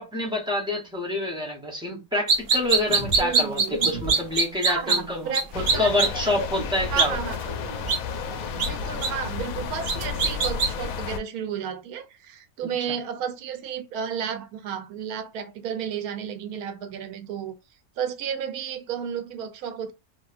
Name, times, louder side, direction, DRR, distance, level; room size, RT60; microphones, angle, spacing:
voice 1, 0.0-7.2 12.6-12.7, left 1 dB, 5° right, 0.6 m, -27 dB
sound 1, 2.3-5.0 5.3-5.4 5.7-6.1 7.0-7.1 7.9-8.0 8.6-8.7 9.0-9.1 9.9-10.7, right 4 dB, 55° right, 0.7 m, -21 dB
sound 2, 2.9-4.4 5.4-9.1 9.9-10.1, right 1 dB, 20° left, 1.0 m, -37 dB
voice 2, 3.2-3.7 4.7-6.1 6.8-7.4 8.6-17.5 18.0-19.9, right 8 dB, 90° right, 1.1 m, -32 dB
sound 3, 5.5-11.2, left 6 dB, 75° left, 0.9 m, -32 dB
2.7 x 2.7 x 2.4 m
omnidirectional pair, 1.5 m